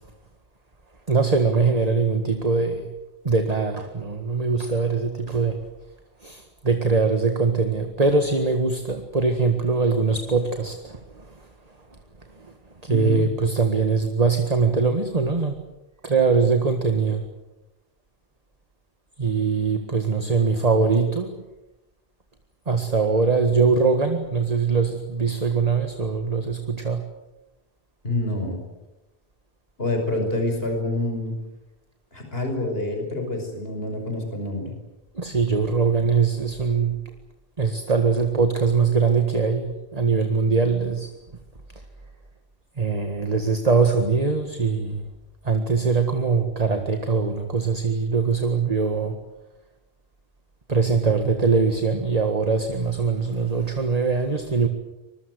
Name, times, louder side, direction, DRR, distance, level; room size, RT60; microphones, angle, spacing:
voice 1, 1.1-2.9 3.2-5.6 6.2-11.4 12.4-12.5 12.8-15.6 16.0-17.3 19.2-21.4 22.7-27.1 35.1-37.0 37.6-41.1 42.8-45.1 45.4-49.2 50.7-54.7, right 4 dB, 35° right, 6 dB, 1.9 m, -22 dB
voice 2, 12.9-13.2 28.0-28.6 29.8-31.3 32.1-34.7, left 1 dB, 65° left, 3 dB, 5.9 m, -27 dB
25.5 x 22.0 x 8.0 m, 0.99 s
omnidirectional pair, 1.1 m